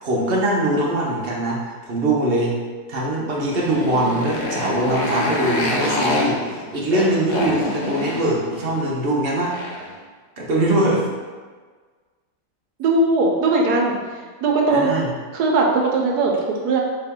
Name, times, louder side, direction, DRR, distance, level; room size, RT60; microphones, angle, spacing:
voice 1, 0.0-2.6 2.9-9.6 10.4-11.1 14.7-15.1, right 1 dB, 50° right, -3 dB, 0.8 m, -22 dB
Motorcycle, 3.3-10.0, left 1 dB, 80° left, 1.4 m, -27 dB
voice 2, 12.8-14.0 14.4-14.9 15.3-16.8, right 3 dB, 80° right, 0 dB, 1.2 m, -19 dB
4.3 x 2.9 x 3.6 m, 1.5 s
omnidirectional pair, 1.7 m